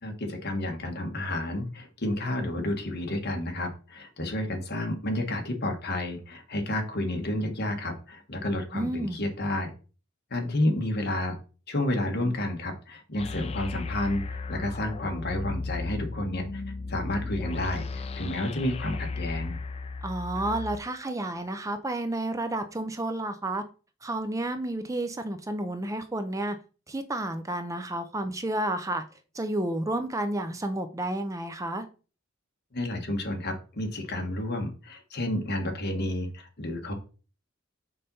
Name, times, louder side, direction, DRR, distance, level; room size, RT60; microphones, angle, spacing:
voice 1, 0.0-9.7 10.3-11.4 11.7-16.5 16.9-19.5 32.7-36.9, left 1 dB, 50° left, 3 dB, 1.5 m, -30 dB
voice 2, 8.7-9.2 20.0-23.6 24.0-26.6 26.9-29.0 29.3-31.9, right 1 dB, 15° right, 8 dB, 0.5 m, -31 dB
sound 1, 13.2-20.8, left 3 dB, 30° left, 0.5 m, -35 dB
5.5 x 4.0 x 5.4 m, 0.36 s
head